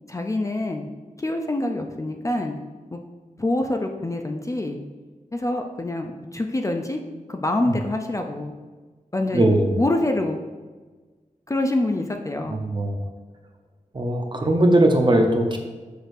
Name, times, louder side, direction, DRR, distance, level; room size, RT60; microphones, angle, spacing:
voice 1, 0.1-0.9 1.2-2.6 2.9-3.0 3.4-4.8 5.3-7.0 7.3-8.5 9.1-10.4 11.5-12.6, left 1 dB, 25° left, 3 dB, 0.4 m, -26 dB
voice 2, 9.3-9.8 12.5-13.0 13.9-15.6, right 1 dB, 35° right, 3 dB, 0.7 m, -19 dB
6.4 x 6.4 x 2.6 m, 1.4 s
wide cardioid pair, 115°, 14 cm